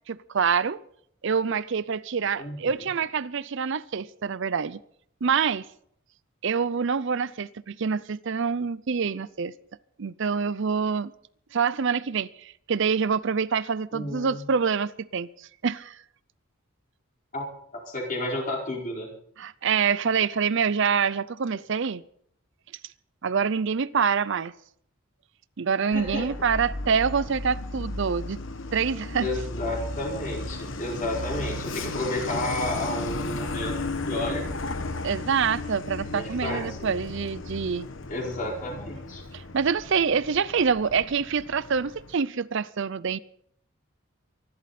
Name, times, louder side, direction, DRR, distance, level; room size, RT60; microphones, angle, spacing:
voice 1, 0.1-0.8 1.2-4.8 5.2-5.7 6.4-9.5 10.0-11.1 11.5-16.0 19.4-22.0 23.2-24.5 25.6-28.4 28.7-29.3 35.0-37.9 39.3-43.2, right 6 dB, 60° right, 0.5 m, -26 dB
voice 2, 2.4-2.8 13.9-14.4 17.3-17.5 17.9-19.1 25.8-26.2 29.2-33.7 34.1-34.4 36.1-36.9 38.1-39.2, left 1 dB, 40° left, 4.8 m, -31 dB
Truck, 25.9-42.1, left 2 dB, 60° left, 1.1 m, -35 dB
24.5 x 11.5 x 4.3 m
head